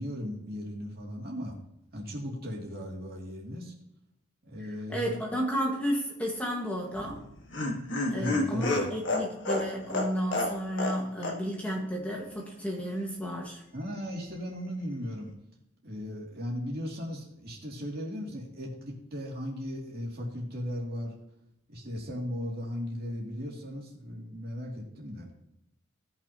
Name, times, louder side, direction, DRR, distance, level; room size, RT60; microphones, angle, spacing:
voice 1, 0.0-1.5 1.9-3.7 4.4-5.2 8.1-8.9 13.7-15.3 15.8-21.1 21.7-25.3, equal, 45° right, -2 dB, 2.6 m, -37 dB
voice 2, 4.9-7.2 8.1-13.6, equal, 5° left, -2 dB, 1.5 m, -32 dB
Laughter, 6.9-11.0 11.2-11.4 11.7-11.8, left 2 dB, 55° left, 1.5 m, -30 dB
17.0 x 6.0 x 2.9 m, 0.83 s
head